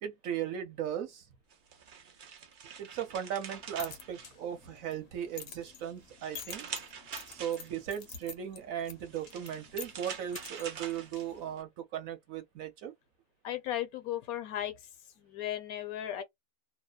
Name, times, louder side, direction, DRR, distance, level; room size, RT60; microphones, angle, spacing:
voice 1, 0.0-1.3 2.8-6.7 7.3-12.9, right 10 dB, 65° right, 1.0 m, -37 dB
sound 1, 1.5-4.9 5.3-8.0 8.9-11.6, right 7 dB, 80° right, 0.4 m, -46 dB
sound 2, 3.5-11.5, left 7 dB, 55° left, 0.7 m, -49 dB
voice 2, 13.4-14.9 15.2-16.2, left 12 dB, 75° left, 1.1 m, -36 dB
2.7 x 2.0 x 2.3 m
omnidirectional pair, 1.6 m